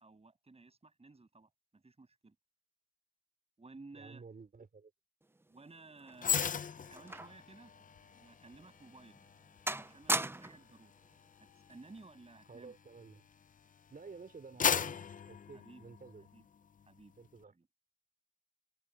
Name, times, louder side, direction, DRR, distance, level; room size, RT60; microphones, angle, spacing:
voice 1, 0.0-2.4 3.6-4.3 5.5-6.5 6.9-7.7 8.1-9.2 9.8-10.9 11.7-12.7 15.5-15.8 16.2-16.5 16.9-17.1 17.5-17.7, right 3 dB, 40° right, 7.1 m, -56 dB
voice 2, 3.9-4.9 12.5-13.2 13.9-15.0 15.2-16.3 17.2-17.5, right 4 dB, 70° right, 4.4 m, -52 dB
sound 1, 5.4-7.5 7.8-7.9 8.6-8.7 9.1-9.4 9.7-10.7 11.7-12.0, right 2 dB, 15° right, 0.4 m, -38 dB
sound 2, 6.2-13.6 14.1-16.4 16.8-17.0, left 7 dB, 60° left, 0.4 m, -38 dB
wide cardioid pair, 110°, 15 cm